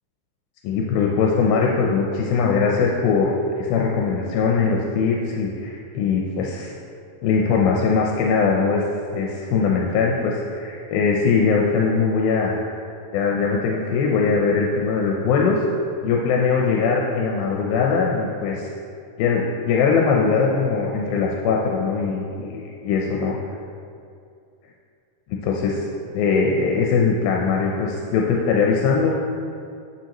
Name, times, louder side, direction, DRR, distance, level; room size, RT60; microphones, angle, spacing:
voice 1, 0.6-6.7 7.2-8.8 9.1-12.6 13.1-15.6 16.0-18.7 19.2-23.4 25.4-25.9 26.1-29.2, left 5 dB, 80° left, -1 dB, 2.4 m, -21 dB
9.0 x 7.4 x 3.0 m, 2.4 s
omnidirectional pair, 4.3 m